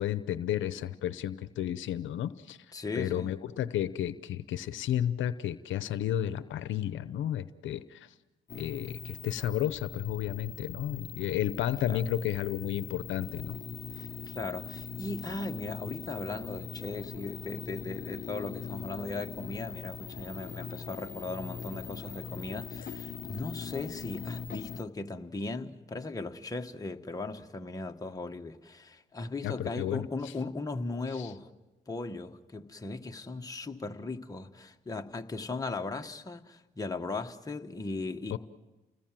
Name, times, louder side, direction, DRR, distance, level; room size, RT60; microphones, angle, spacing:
voice 1, 0.0-2.6 3.0-8.1 8.5-13.6 29.4-30.0 31.1-31.3 38.3-38.4, left 11 dB, 75° left, 0.8 m, -32 dB
voice 2, 2.7-3.3 11.8-12.1 13.9-31.5 31.9-38.4, left 3 dB, 20° left, 1.4 m, -38 dB
sound 1, 8.5-24.8, left 7 dB, 45° left, 0.8 m, -41 dB
29.5 x 19.5 x 7.6 m
cardioid pair, 90°, 20 cm